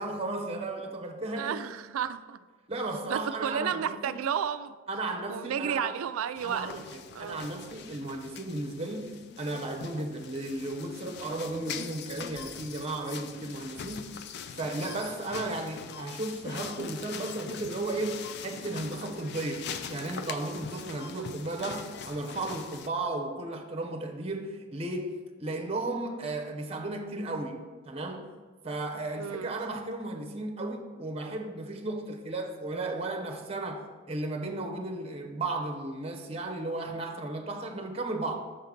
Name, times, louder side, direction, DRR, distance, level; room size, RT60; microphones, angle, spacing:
voice 1, 0.0-1.6 2.7-4.2 4.9-5.9 6.4-14.2 14.6-28.4 28.6-33.8 34.1-38.4, right 2 dB, 30° right, 0.7 m, -35 dB
voice 2, 1.4-2.4 3.1-4.8 5.3-6.7 7.1-7.5 21.1-21.3 29.2-29.6, right 8 dB, 85° right, 0.3 m, -32 dB
sound 1, 6.4-22.9, left 7 dB, 50° left, 0.3 m, -42 dB
6.6 x 3.8 x 5.8 m
head